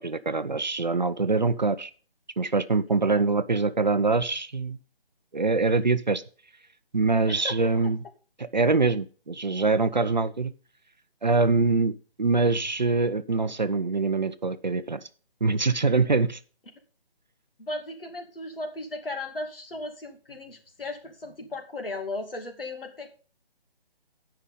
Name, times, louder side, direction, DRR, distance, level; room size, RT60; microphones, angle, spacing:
voice 1, 0.0-1.9 2.4-4.8 5.3-6.2 6.9-8.0 8.4-10.5 11.2-11.9 12.2-15.0 15.4-16.4, right 3 dB, 45° right, 12 dB, 0.6 m, -24 dB
voice 2, 7.3-7.7 17.6-23.2, left 2 dB, 65° left, 4 dB, 2.6 m, -36 dB
16.5 x 5.7 x 3.8 m, 0.38 s
hypercardioid pair, 180°, 30 cm